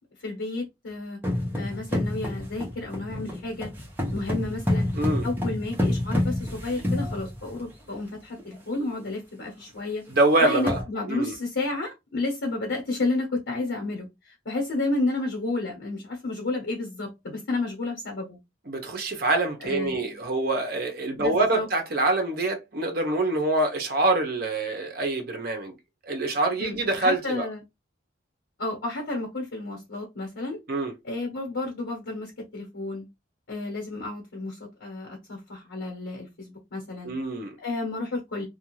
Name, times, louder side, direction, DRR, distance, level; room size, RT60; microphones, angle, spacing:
voice 1, 0.2-1.2 1.5-3.7 4.1-4.9 5.2-10.0 10.4-18.4 19.6-20.1 21.2-21.7 26.6-27.6 28.6-30.6 31.0-33.1 33.5-37.1 37.6-38.5, left 2 dB, 85° left, 1.0 m, -31 dB
sound 1, 1.2-7.7 8.4-8.5 8.8-9.0 9.4-9.5 10.1-10.2 10.5-10.8, left 1 dB, 10° right, 0.7 m, -28 dB
voice 2, 10.1-10.8 11.1-11.4 18.7-25.7 26.0-27.5 30.7-30.9 37.0-37.5, right 2 dB, 50° right, 0.7 m, -25 dB
2.4 x 2.3 x 3.0 m
head